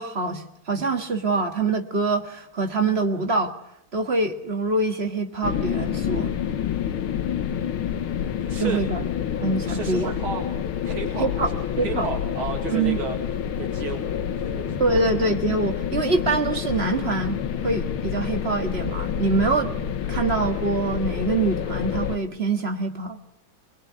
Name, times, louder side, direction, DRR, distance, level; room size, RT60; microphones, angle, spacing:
voice 1, 0.0-3.5 3.9-6.4 8.6-9.0 9.4-10.2 11.2-11.5 11.8-12.1 12.7-13.0 14.8-23.2, right 3 dB, 30° right, 6 dB, 1.9 m, -25 dB
sound 1, 5.4-22.2, left 9 dB, 80° left, 2.1 m, -28 dB
voice 2, 8.5-8.8 9.6-10.4 10.8-13.2 13.6-15.0, right 5 dB, 85° right, 2 dB, 3.1 m, -33 dB
22.5 x 22.5 x 9.4 m, 0.77 s
omnidirectional pair, 2.3 m